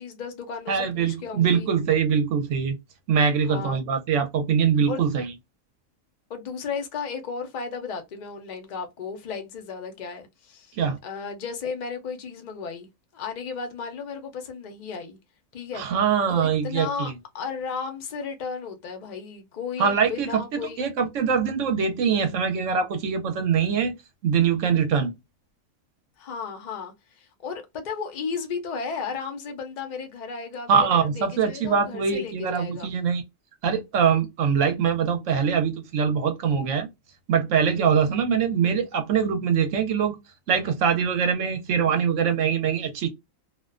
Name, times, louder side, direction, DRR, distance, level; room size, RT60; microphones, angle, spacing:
voice 1, 0.0-1.7 3.4-3.8 4.9-5.1 6.3-10.7 11.0-15.2 15.5-15.9 16.3-20.9 26.2-32.9, left 5 dB, 50° left, 0.5 m, -34 dB
voice 2, 0.7-2.8 3.1-5.3 10.8-11.0 15.7-17.1 19.8-20.4 20.8-23.9 24.2-25.1 30.7-33.2 33.6-36.9 37.3-40.2 40.5-43.1, right 7 dB, 70° right, 0.9 m, -23 dB
2.4 x 2.2 x 2.3 m
omnidirectional pair, 1.4 m